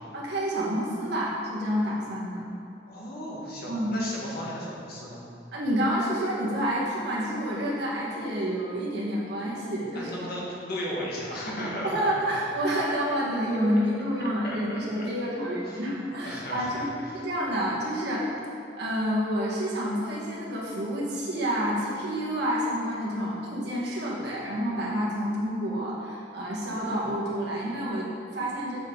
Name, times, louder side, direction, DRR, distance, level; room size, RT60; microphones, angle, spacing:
voice 1, 0.1-2.4 3.7-3.9 5.5-10.3 11.8-16.9 17.1-18.3 18.8-28.8, equal, 60° right, -5 dB, 1.7 m, -29 dB
voice 2, 2.9-5.2 9.9-12.3 12.7-13.2 14.2-15.1 15.6-15.9 16.2-17.3, equal, 55° left, -5 dB, 1.7 m, -36 dB
7.0 x 6.9 x 3.9 m, 2.8 s
head